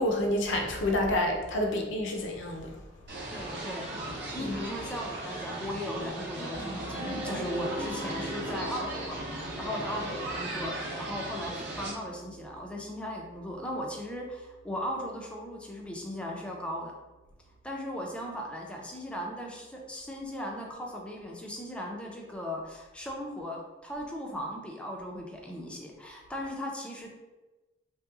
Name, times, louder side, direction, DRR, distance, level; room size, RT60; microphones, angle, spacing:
voice 1, 0.0-2.7 4.4-4.5, left 1 dB, 70° left, 2 dB, 0.5 m, -28 dB
sound 1, 3.1-11.9, right 1 dB, 60° right, 0.7 m, -37 dB
voice 2, 3.3-16.9 17.6-27.1, equal, 5° left, -1 dB, 0.4 m, -37 dB
Piano, 6.5-18.4, left 1 dB, 80° right, 1.0 m, -46 dB
3.0 x 2.9 x 2.3 m, 1.1 s
head